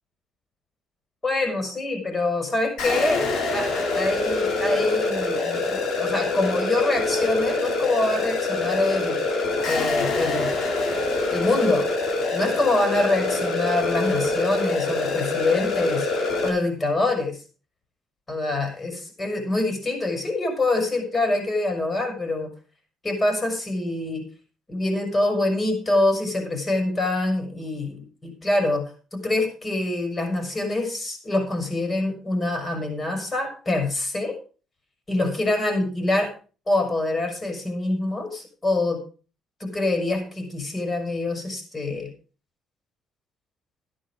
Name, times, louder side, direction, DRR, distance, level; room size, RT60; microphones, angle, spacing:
voice 1, 1.2-9.2 9.7-10.6 11.3-11.9 12.3-16.1 16.4-17.4 18.3-22.5 23.0-24.3 24.7-34.4 35.1-36.3 36.7-39.0 39.6-42.1, left 2 dB, 25° left, 5 dB, 5.8 m, -25 dB
sound 1, 2.8-16.5, left 3 dB, 70° left, 3.9 m, -25 dB
12.5 x 10.0 x 5.0 m, 0.36 s
supercardioid pair, 80°, 0 cm